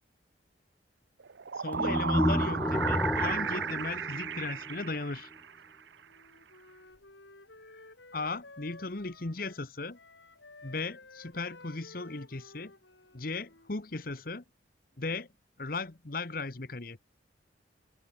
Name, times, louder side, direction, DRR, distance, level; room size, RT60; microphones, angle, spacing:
sound 1, 1.2-5.7, right 6 dB, 75° right, 0.7 m, -34 dB
voice 1, 1.5-5.3 7.6-7.8 8.1-10.0 10.6-12.7 13.1-14.4 15.0-15.3 15.6-17.0, left 3 dB, 50° left, 1.2 m, -37 dB
sound 2, 1.7-4.9, left 1 dB, 10° left, 0.4 m, -31 dB
Wind instrument woodwind instrument, 6.1-9.7 9.9-13.9, left 2 dB, 80° left, 7.1 m, -54 dB
head